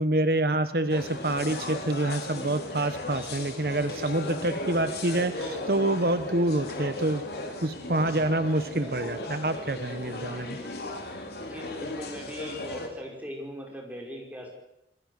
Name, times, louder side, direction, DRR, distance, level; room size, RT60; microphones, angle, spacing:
voice 1, 0.0-7.2 7.6-10.6, right 1 dB, 55° right, 10 dB, 1.1 m, -27 dB
sound 1, 0.9-12.9, left 2 dB, 65° left, 3.9 m, -36 dB
voice 2, 4.2-4.5 11.4-14.6, equal, 10° right, 0 dB, 5.4 m, -40 dB
sound 2, 5.2-7.3 8.6-10.7, equal, 5° left, 6.7 m, -48 dB
27.0 x 20.0 x 6.6 m, 0.85 s
head